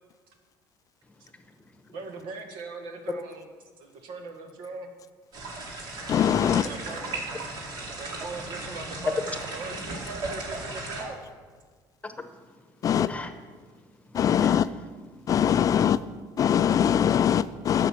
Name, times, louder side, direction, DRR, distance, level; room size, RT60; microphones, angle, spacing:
voice 1, 1.0-2.0 5.8-6.8 9.1-9.2 12.0-15.9, left 3 dB, 15° left, 8 dB, 1.1 m, -41 dB
voice 2, 1.9-3.4 3.8-4.9 6.4-7.2 7.9-9.2 9.5-11.2, right 3 dB, 75° right, 4 dB, 1.7 m, -40 dB
sound 1, 5.3-11.0, right 2 dB, 55° right, 2.6 m, -36 dB
voice 3, 6.1-6.7 12.8-13.1 14.1-14.7 15.3-16.0 16.4-17.9, left 9 dB, 40° left, 15 dB, 0.4 m, -22 dB
11.0 x 6.8 x 7.2 m, 1.5 s
cardioid pair, 100°, 9 cm